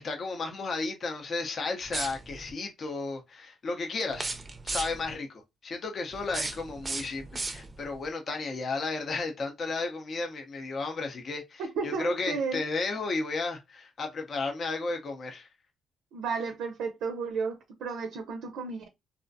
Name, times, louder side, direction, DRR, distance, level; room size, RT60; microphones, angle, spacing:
voice 1, 0.0-4.3 4.6-15.5, left 3 dB, 50° left, 0.5 m, -33 dB
sound 1, 1.8-2.5 4.1-5.2 6.1-8.0, right 3 dB, 30° right, 0.4 m, -36 dB
voice 2, 11.6-12.6 16.1-18.9, right 5 dB, 85° right, 0.4 m, -33 dB
2.3 x 2.1 x 2.5 m
cardioid pair, 90°, 0 cm